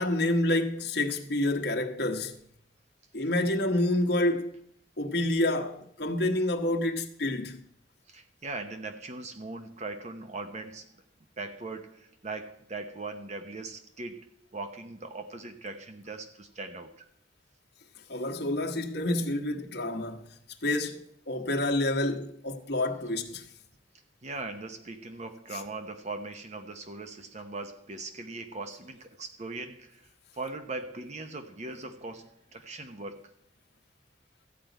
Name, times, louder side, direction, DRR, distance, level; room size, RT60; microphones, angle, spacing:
voice 1, 0.0-2.4 3.1-4.6 5.0-7.6 18.1-21.0 21.3-23.5, left 1 dB, 60° left, 1.3 m, -28 dB
voice 2, 8.1-10.9 11.4-17.1 24.2-33.3, right 3 dB, 40° right, 0.8 m, -40 dB
14.0 x 5.1 x 9.1 m
head